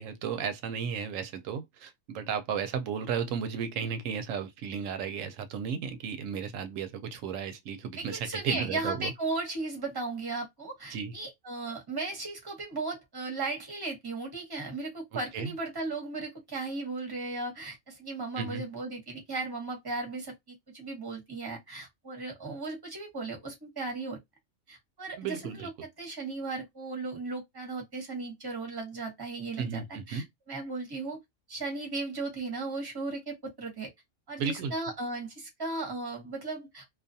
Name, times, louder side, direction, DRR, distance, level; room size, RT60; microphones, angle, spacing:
voice 1, 0.0-9.1 10.9-11.1 15.3-15.5 18.4-18.6 25.2-25.7 29.6-30.2 34.4-34.7, right 7 dB, 75° right, 0.9 m, -34 dB
voice 2, 8.0-24.2 24.7-25.7 26.0-29.8 30.1-31.2 31.5-33.9 34.3-36.8, right 3 dB, 20° right, 0.9 m, -36 dB
2.4 x 2.4 x 2.6 m
omnidirectional pair, 1.4 m